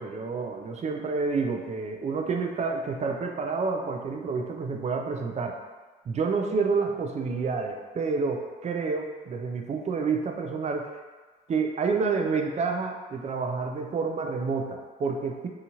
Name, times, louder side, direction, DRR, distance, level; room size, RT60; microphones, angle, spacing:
voice 1, 0.0-5.6 6.1-10.9 11.5-15.5, right 4 dB, 35° right, 4 dB, 0.3 m, -29 dB
2.7 x 2.4 x 2.9 m, 1.3 s
cardioid pair, 90°, 20 cm